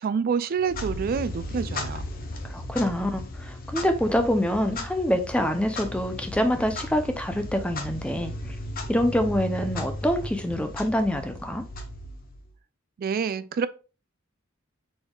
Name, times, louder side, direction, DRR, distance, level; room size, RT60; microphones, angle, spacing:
voice 1, 0.0-2.0 13.0-13.7, right 6 dB, 45° right, 0.3 m, -27 dB
Clock, 0.6-12.5, left 1 dB, 45° left, 0.8 m, -36 dB
voice 2, 2.4-8.5 8.9-11.6, equal, 5° left, 0.5 m, -26 dB
6.2 x 3.4 x 2.3 m
head